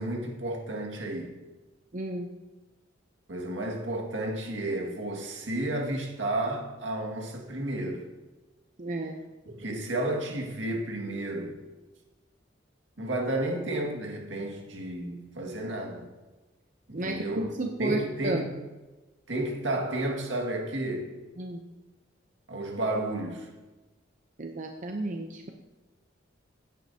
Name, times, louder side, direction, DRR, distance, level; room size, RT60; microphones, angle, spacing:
voice 1, 0.0-1.3 3.3-8.1 9.5-11.6 13.0-16.1 16.9-17.5 17.8-18.6 19.3-21.1 22.5-23.5, right 1 dB, 75° right, 2.1 m, -32 dB
voice 2, 1.9-2.3 8.8-9.2 16.9-18.4 21.4-21.6 24.4-25.5, right 2 dB, 40° right, 0.7 m, -32 dB
16.0 x 9.3 x 2.9 m
head